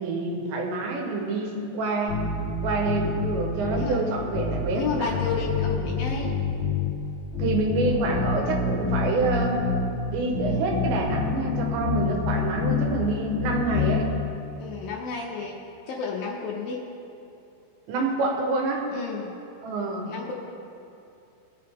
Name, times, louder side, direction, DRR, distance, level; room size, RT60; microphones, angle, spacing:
voice 1, 0.0-2.2 2.6-5.1 7.4-9.7 10.1-14.1 17.9-18.9 19.6-20.1, right 2 dB, 90° right, 1 dB, 3.6 m, -27 dB
sound 1, 2.1-3.9 4.3-6.9 7.3-9.9 10.3-12.9 13.3-14.0, left 4 dB, 20° left, 2.0 m, -27 dB
voice 2, 4.7-6.3 12.0-12.3 14.6-15.6 15.9-16.8 18.9-19.3 20.1-20.3, left 5 dB, 75° left, -1 dB, 2.3 m, -31 dB
20.5 x 7.6 x 3.7 m, 2.7 s
omnidirectional pair, 4.9 m